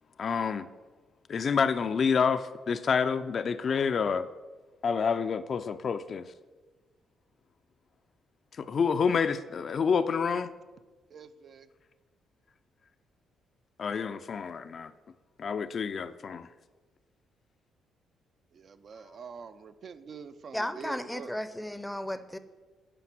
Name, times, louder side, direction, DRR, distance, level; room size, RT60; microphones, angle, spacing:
voice 1, 0.2-0.7 1.3-4.3 4.8-6.2 8.6-10.5 13.8-14.9 15.4-16.5, left 6 dB, 50° left, 10 dB, 0.4 m, -28 dB
voice 2, 11.1-11.7 18.5-21.3, right 6 dB, 55° right, 11 dB, 0.5 m, -45 dB
voice 3, 20.5-22.4, left 1 dB, 5° left, 12 dB, 0.6 m, -34 dB
9.8 x 5.1 x 6.0 m, 1.3 s
cardioid pair, 90°, 0 cm